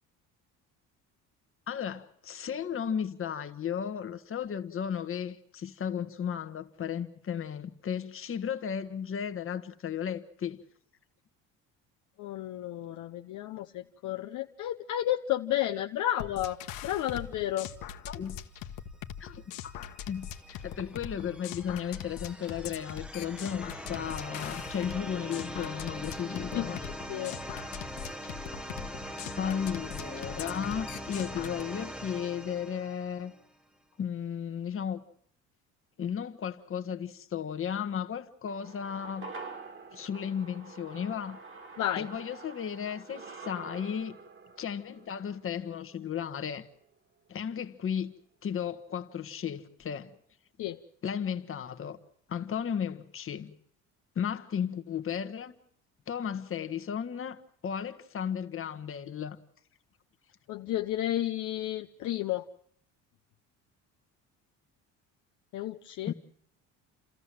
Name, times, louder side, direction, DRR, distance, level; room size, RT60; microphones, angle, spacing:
voice 1, 1.7-10.6 18.1-18.4 19.2-19.8 20.1-26.8 29.4-33.3 34.0-35.0 36.0-39.3 39.9-41.4 42.0-44.2 44.6-46.7 47.3-48.1 48.4-50.1 51.0-52.0 52.3-53.5 54.1-55.6 56.1-59.4 66.1-66.2, left 8 dB, 40° left, 1.4 m, -34 dB
voice 2, 12.2-16.6 16.8-17.7 26.5-27.4 41.8-42.1 50.6-50.8 60.5-62.4 65.5-66.1, left 13 dB, 60° left, 0.8 m, -32 dB
sound 1, 16.2-31.6, left 10 dB, 80° left, 1.3 m, -42 dB
sound 2, 19.6-33.5, equal, 5° right, 1.1 m, -42 dB
sound 3, 38.5-47.0 47.3-47.4, right 4 dB, 35° right, 2.2 m, -47 dB
29.5 x 13.5 x 7.6 m
cardioid pair, 95°, 33 cm